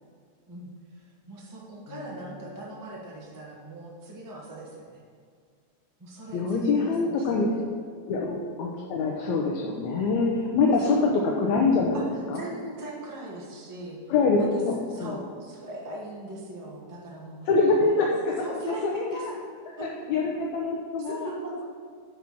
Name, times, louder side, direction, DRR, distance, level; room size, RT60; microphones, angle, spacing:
voice 1, 0.5-5.0 6.0-7.6 8.1-8.3 11.9-12.0 12.3-14.0 14.4-14.6 14.9-17.4 17.9-18.0 18.4-19.3 19.8-19.9 21.1-21.6, right 1 dB, 20° right, -4 dB, 0.5 m, -39 dB
voice 2, 6.3-7.5 8.1-12.0 12.3-12.4 14.1-15.2 17.5-18.4 18.8-19.3 19.7-21.3, left 3 dB, 75° left, -1 dB, 2.1 m, -25 dB
10.0 x 4.8 x 5.9 m, 2.2 s
omnidirectional pair, 3.4 m